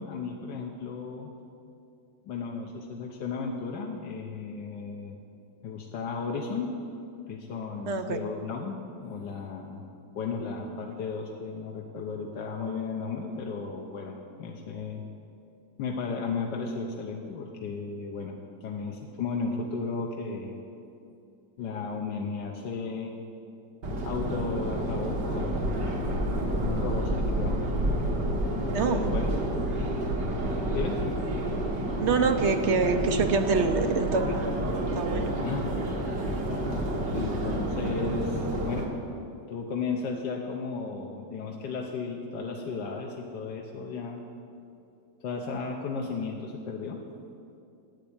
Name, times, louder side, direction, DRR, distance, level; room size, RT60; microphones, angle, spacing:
voice 1, 0.0-1.3 2.3-5.2 5.6-6.8 7.3-9.8 10.2-15.0 15.8-18.4 18.6-20.6 21.6-23.2 24.0-25.6 26.4-27.6 28.5-29.4 30.7-31.0 35.4-35.7 36.5-36.9 37.1-38.9 39.5-44.2 45.2-47.0, left 4 dB, 85° left, 1 dB, 1.6 m, -34 dB
voice 2, 7.9-8.2 28.7-29.1 32.0-34.4 34.9-35.3, right 4 dB, 60° right, 7 dB, 0.7 m, -25 dB
Subway metro underground, 23.8-38.8, right 1 dB, 75° right, 2.3 m, -29 dB
11.5 x 8.8 x 8.6 m, 2.6 s
omnidirectional pair, 1.9 m